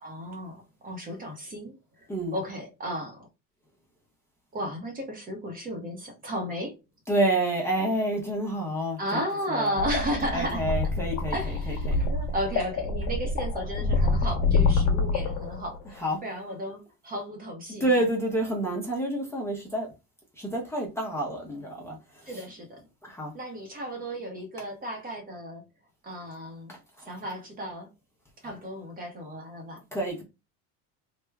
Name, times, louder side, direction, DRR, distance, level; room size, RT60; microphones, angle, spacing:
voice 1, 0.0-3.2 4.5-6.8 9.0-10.6 11.3-17.9 22.3-22.8 23.3-25.6 26.0-26.7 27.0-27.9 28.4-29.8, equal, 25° right, 0.8 m, -34 dB
voice 2, 7.1-9.2 9.5-9.8 10.3-12.0 15.9-16.2 17.8-19.9 20.4-22.4 23.0-23.3 26.7-27.1 29.9-30.2, right 1 dB, 5° left, 0.7 m, -29 dB
sound 1, 9.8-15.9, left 3 dB, 60° left, 1.0 m, -26 dB
3.3 x 2.1 x 3.4 m
cardioid pair, 155°, 35 cm